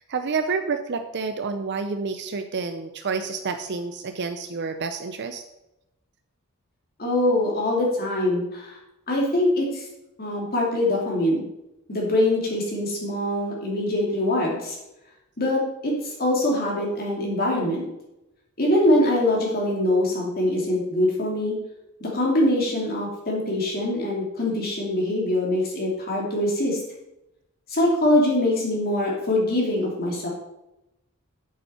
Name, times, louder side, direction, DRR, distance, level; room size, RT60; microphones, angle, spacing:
voice 1, 0.0-5.4, right 4 dB, 50° right, 7 dB, 0.6 m, -29 dB
voice 2, 7.0-8.8 9.1-9.9 10.2-11.4 11.9-14.8 15.4-17.8 18.6-21.5 22.0-26.8 27.7-30.3, left 1 dB, 45° left, -2 dB, 2.6 m, -23 dB
8.9 x 8.4 x 4.3 m, 0.90 s
head